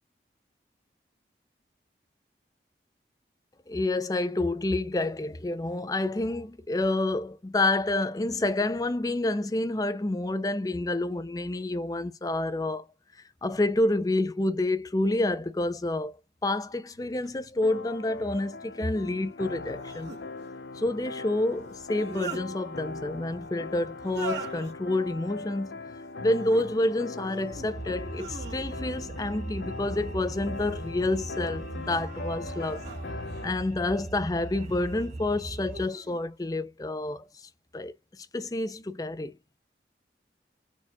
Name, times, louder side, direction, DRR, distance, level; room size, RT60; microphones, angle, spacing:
voice 1, 3.7-12.9 13.1-16.2 16.4-20.1 20.7-25.8 26.2-32.8 33.4-39.4, left 2 dB, 20° left, 0.4 m, -29 dB
sound 1, 17.0-33.5, left 3 dB, 75° left, 0.5 m, -41 dB
sound 2, 17.2-17.3 19.6-20.2 21.7-22.5 24.0-24.7 26.2-26.7 27.2-27.7 28.1-29.0 30.2-30.9 31.5-33.5 34.6-35.1 35.7-36.2, right 3 dB, 85° right, 1.9 m, -42 dB
sound 3, 27.5-35.9, right 2 dB, 40° right, 0.5 m, -39 dB
4.4 x 2.3 x 4.4 m
head